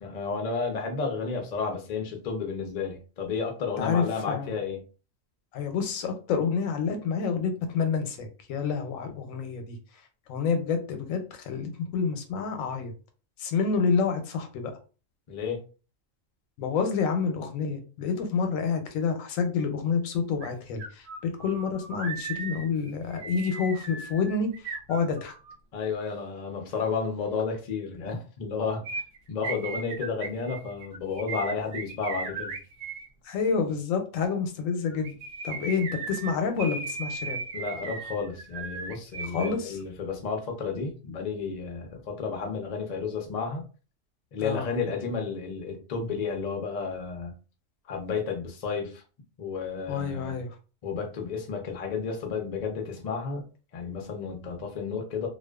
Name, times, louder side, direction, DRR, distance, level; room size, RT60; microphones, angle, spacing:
voice 1, 0.0-4.8 15.3-15.6 25.7-28.8 29.3-32.6 37.5-43.6 44.3-47.3 47.9-49.0 49.4-50.4 50.8-53.5 53.7-55.3, left 5 dB, 55° left, 3 dB, 0.5 m, -32 dB
voice 2, 3.8-4.5 5.5-9.8 10.3-12.9 13.4-14.7 16.6-25.3 33.2-35.1 35.4-37.4 39.3-39.8 44.4-44.7 49.9-50.6, left 5 dB, 90° left, 6 dB, 1.0 m, -28 dB
sound 1, 20.4-20.5 20.8-25.6 28.8-33.1 34.9-39.5 39.8-39.9, right 4 dB, 75° right, 0.9 m, -37 dB
2.5 x 2.3 x 2.2 m, 0.36 s
omnidirectional pair, 1.3 m